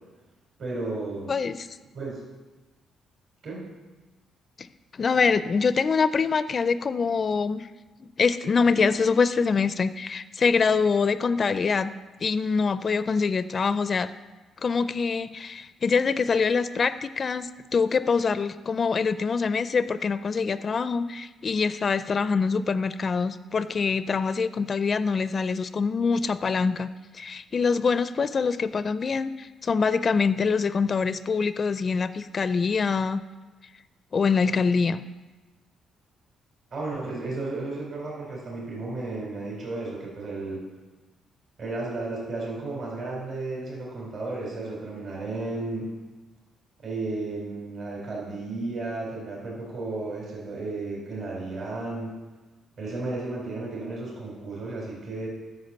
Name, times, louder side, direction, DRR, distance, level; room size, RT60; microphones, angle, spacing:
voice 1, 0.6-1.3 1.9-2.2 3.4-3.7 36.7-40.6 41.6-45.9 46.8-52.2 52.8-55.3, right 2 dB, 55° right, -3 dB, 3.6 m, -33 dB
voice 2, 1.3-1.7 4.6-4.7 4.9-7.7 8.0-11.9 12.2-14.1 14.6-26.9 27.1-33.2 34.1-35.0, left 5 dB, 40° left, 13 dB, 0.4 m, -24 dB
9.5 x 6.5 x 6.7 m, 1.2 s
cardioid pair, 90°, 0 cm